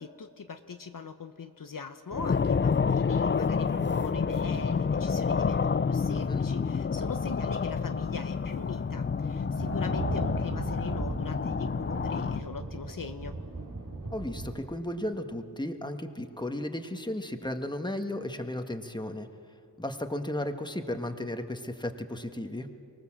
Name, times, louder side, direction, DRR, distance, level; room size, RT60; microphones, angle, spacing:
voice 1, 0.0-13.4, left 5 dB, 60° left, 7 dB, 0.9 m, -41 dB
sound 1, 2.1-12.4, left 5 dB, 30° left, 0.4 m, -29 dB
sound 2, 4.2-5.0 5.7-6.7 7.0-14.6, right 2 dB, 60° right, 2.9 m, -39 dB
voice 2, 6.1-6.4 14.1-19.3 19.8-22.7, left 1 dB, 10° left, 6 dB, 1.5 m, -34 dB
24.5 x 18.5 x 7.4 m, 2.5 s
wide cardioid pair, 55°, 38 cm